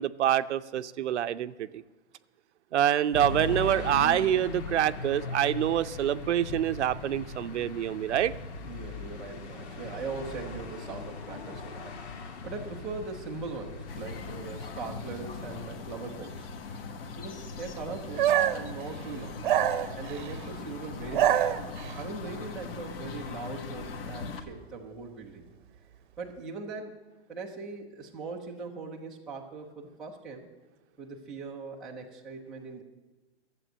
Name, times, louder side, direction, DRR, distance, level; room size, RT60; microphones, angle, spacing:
voice 1, 0.0-1.8 2.7-8.3, right 11 dB, 85° right, 12 dB, 0.7 m, -26 dB
sound 1, 3.1-15.7, left 3 dB, 75° left, 1.9 m, -39 dB
voice 2, 8.7-16.5 17.1-19.4 20.0-21.4 21.9-25.4 26.2-30.5 31.0-32.8, right 4 dB, ahead, -6 dB, 0.4 m, -40 dB
sound 2, 13.9-24.4, left 4 dB, 55° left, 1.5 m, -40 dB
sound 3, 18.2-18.7 19.4-20.4 21.0-22.0, right 11 dB, 45° right, 0.8 m, -26 dB
13.0 x 7.8 x 8.8 m, 1.2 s
hypercardioid pair, 165°, 34 cm